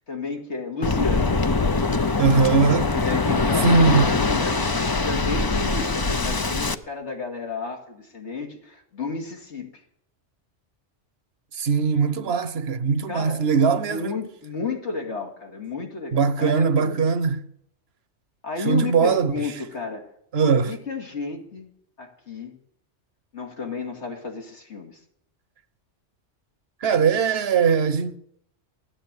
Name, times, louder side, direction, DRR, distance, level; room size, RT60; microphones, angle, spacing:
voice 1, 0.0-1.4 2.9-3.8 4.2-9.8 13.1-17.0 18.4-20.1 20.4-22.6 23.3-25.0, left 4 dB, 70° left, 2.7 m, -32 dB
Waves surf, 0.8-6.7, left 3 dB, 25° left, 0.5 m, -23 dB
voice 2, 2.2-2.9 3.6-4.1 11.5-14.1 16.1-17.4 18.6-19.5 20.3-20.7 26.8-28.2, right 5 dB, 60° right, 1.2 m, -20 dB
15.5 x 10.0 x 8.9 m
omnidirectional pair, 1.2 m